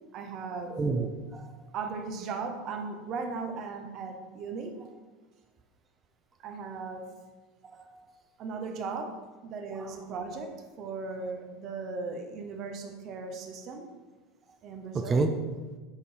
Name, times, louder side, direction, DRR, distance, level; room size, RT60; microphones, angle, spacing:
voice 1, 0.0-0.8 1.7-4.8 6.4-7.1 8.4-13.9 14.6-15.2, right 4 dB, 45° right, 5 dB, 0.8 m, -37 dB
voice 2, 0.7-1.6 7.7-8.1 9.7-10.0 14.9-15.5, right 3 dB, 25° right, 5 dB, 0.5 m, -30 dB
6.5 x 5.3 x 3.2 m, 1.3 s
figure-of-eight pair, 80°, 0 cm